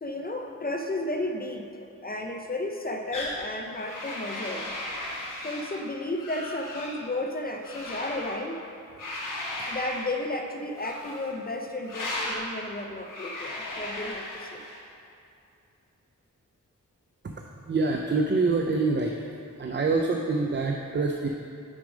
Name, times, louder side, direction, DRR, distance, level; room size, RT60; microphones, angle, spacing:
voice 1, 0.0-4.7 5.4-8.6 9.7-14.6, left 1 dB, 30° left, 3 dB, 0.4 m, -33 dB
sound 1, 3.1-3.4 3.7-5.8 6.2-7.0 7.6-8.4 9.0-10.1 10.7-11.3 11.8-12.4 13.0-14.8, left 1 dB, 80° left, 1.2 m, -36 dB
voice 2, 17.2-19.1 19.6-21.3, right 3 dB, 35° right, 2 dB, 0.4 m, -26 dB
6.2 x 5.0 x 5.0 m, 2.6 s
wide cardioid pair, 85°, 32 cm